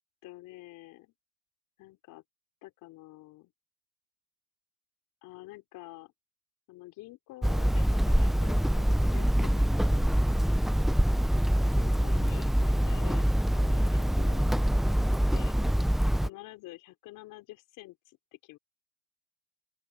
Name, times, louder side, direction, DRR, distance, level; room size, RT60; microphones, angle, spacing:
voice 1, 0.2-1.1 1.8-2.2 2.6-3.5 5.2-6.1 6.7-10.1 11.5-15.6 16.2-18.6, left 18 dB, 45° left, 4.4 m, -48 dB
Hammer, 7.4-16.3, equal, ahead, 0.6 m, -25 dB
open air
hypercardioid pair, 110°, 43 cm